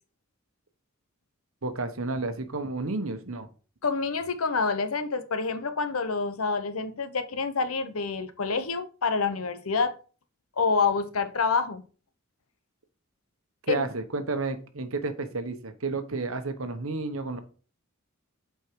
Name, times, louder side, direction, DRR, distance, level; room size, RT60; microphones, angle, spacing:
voice 1, 1.6-3.5 13.6-17.4, right 3 dB, 75° right, 1.1 m, -31 dB
voice 2, 3.8-9.9 10.6-11.8 13.7-13.9, left 4 dB, 90° left, 0.9 m, -27 dB
8.3 x 4.6 x 4.6 m
head